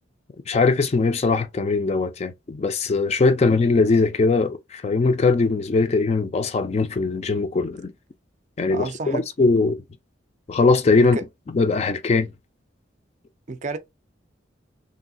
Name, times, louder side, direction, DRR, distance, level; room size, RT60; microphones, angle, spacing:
voice 1, 0.5-7.9 8.6-9.8 10.5-11.2 11.5-12.3, left 3 dB, 35° left, 0.3 m, -20 dB
voice 2, 8.7-9.2 11.0-11.2 13.5-13.8, right 3 dB, 40° right, 0.4 m, -30 dB
3.0 x 2.7 x 2.6 m
head